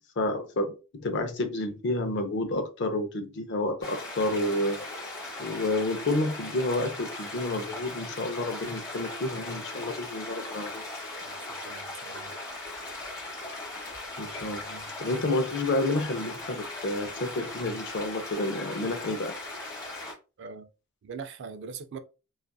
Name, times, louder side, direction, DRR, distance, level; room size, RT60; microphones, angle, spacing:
voice 1, 0.2-4.8 5.4-10.8 14.2-19.3, left 2 dB, 55° left, 0.5 m, -30 dB
sound 1, 3.8-20.1, left 2 dB, 20° left, 0.9 m, -39 dB
voice 2, 11.2-12.3 20.4-20.7 21.0-22.0, right 5 dB, 55° right, 0.3 m, -42 dB
2.6 x 2.4 x 2.2 m
head